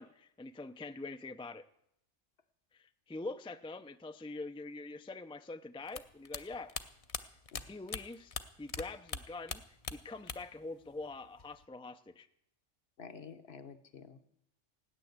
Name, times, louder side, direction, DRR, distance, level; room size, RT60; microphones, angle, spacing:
voice 1, 0.0-1.6 2.7-6.7 7.7-12.3, left 3 dB, 10° left, 9 dB, 0.3 m, -44 dB
sound 1, 5.9-8.8 9.1-10.6 10.9-11.6, left 4 dB, 35° left, 0.7 m, -41 dB
voice 2, 13.0-14.3, left 6 dB, 60° left, 9 dB, 1.2 m, -50 dB
16.5 x 9.9 x 8.0 m, 0.76 s
omnidirectional pair, 1.2 m